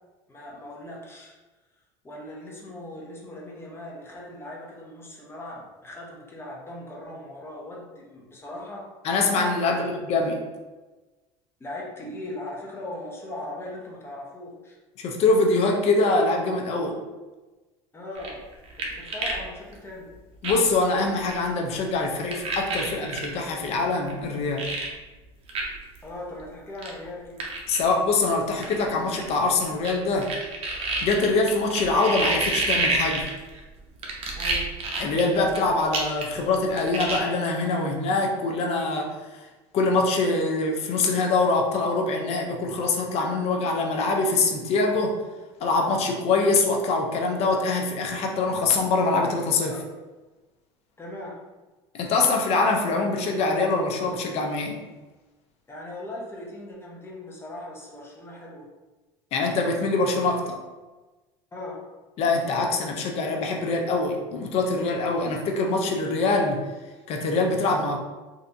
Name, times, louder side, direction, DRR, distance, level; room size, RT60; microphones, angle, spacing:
voice 1, 0.3-1.3 2.0-8.8 9.6-9.9 11.6-14.8 17.9-18.4 18.8-20.1 26.0-27.5 34.4-34.7 49.7-49.8 51.0-51.4 55.7-58.7 61.5-61.9, left 1 dB, 20° left, -3 dB, 0.8 m, -39 dB
voice 2, 9.0-10.4 15.0-17.0 20.4-24.7 27.7-30.3 31.0-33.3 35.0-39.2 39.7-45.2 45.6-49.7 51.9-54.8 59.3-60.6 62.2-66.6 67.1-68.0, left 3 dB, 50° left, 2 dB, 0.5 m, -24 dB
sound 1, 18.1-19.4 19.7-19.8 20.4-20.8 21.2-21.4 22.3-23.3 24.1-24.2 24.6-24.9 25.5-25.6 25.9-26.0 26.8-26.9 27.4-27.8 28.6-29.9 30.2-33.6 34.0-35.6 35.9-36.4 36.7-37.2, right 3 dB, 50° right, 0.8 m, -28 dB
3.3 x 2.6 x 2.6 m, 1.2 s
supercardioid pair, 115°, 13 cm